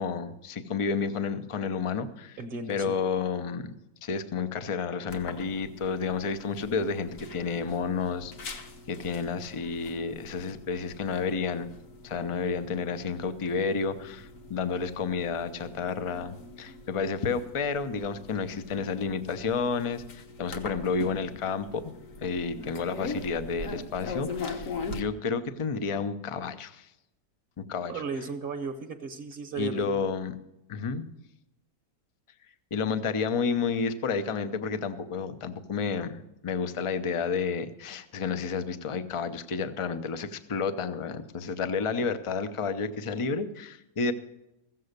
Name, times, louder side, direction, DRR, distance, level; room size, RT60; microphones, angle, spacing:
voice 1, 0.0-2.4 2.7-3.7 4.0-11.7 12.0-26.9 27.7-27.9 29.6-30.3 30.7-31.0 32.7-44.1, left 5 dB, 45° left, 11 dB, 0.4 m, -31 dB
voice 2, 2.4-2.9 27.9-29.9, right 4 dB, 45° right, 4 dB, 0.8 m, -35 dB
sound 1, 5.1-25.0, left 3 dB, 60° left, 1.5 m, -42 dB
15.0 x 7.6 x 6.6 m, 0.88 s
omnidirectional pair, 1.6 m